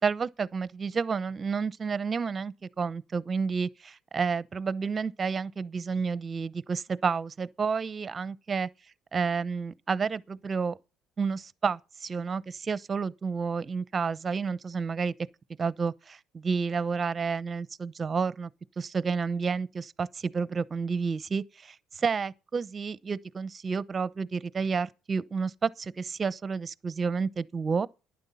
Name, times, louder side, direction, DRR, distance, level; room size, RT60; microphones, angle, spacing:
voice 1, 0.0-8.7 9.1-10.8 11.2-15.1 15.6-18.5 18.8-27.9, right 5 dB, 30° right, 0.7 m, -30 dB
11.5 x 9.8 x 5.6 m
cardioid pair, 110°, 0 cm